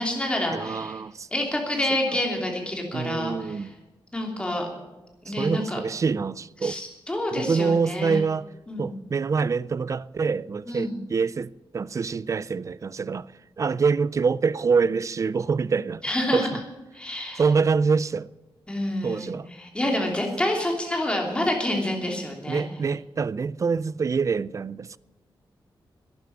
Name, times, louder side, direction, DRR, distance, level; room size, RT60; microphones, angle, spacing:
voice 1, 0.0-1.0 1.3-3.7 4.1-4.7 5.2-5.8 6.6-8.2 8.7-9.0 10.7-10.9 16.0-16.5 16.9-17.4 18.7-19.3 19.6-22.6, left 1 dB, 10° left, 3.0 m, -28 dB
voice 2, 0.5-1.3 2.9-3.7 5.3-6.8 7.3-8.5 8.8-13.3 13.6-16.0 16.3-16.6 17.3-18.3 19.0-19.5 22.5-25.0, right 5 dB, 35° right, 0.4 m, -25 dB
12.0 x 10.5 x 8.8 m
wide cardioid pair, 160°, 9 cm